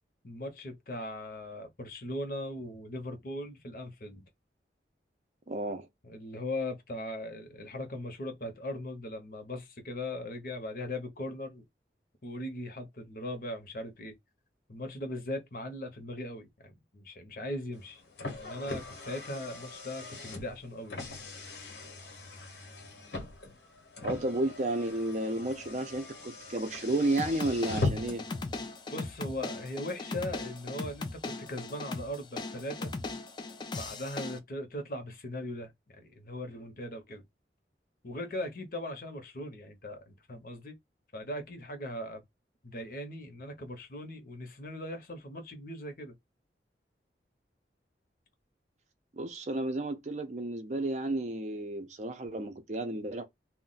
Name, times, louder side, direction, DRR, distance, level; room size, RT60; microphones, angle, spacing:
voice 1, 0.2-4.3 6.0-11.6 12.2-14.1 14.7-18.0 18.4-21.0 28.9-32.9 33.7-37.2 38.0-40.7 41.1-42.2 42.6-46.1, left 1 dB, 50° left, 0.7 m, -39 dB
voice 2, 5.5-5.9 24.0-28.2 49.1-53.3, right 2 dB, 40° right, 0.5 m, -32 dB
Car, 17.7-28.4, left 3 dB, 80° left, 1.0 m, -40 dB
sound 1, 27.2-34.4, left 3 dB, 25° left, 0.3 m, -39 dB
2.3 x 2.1 x 3.8 m
head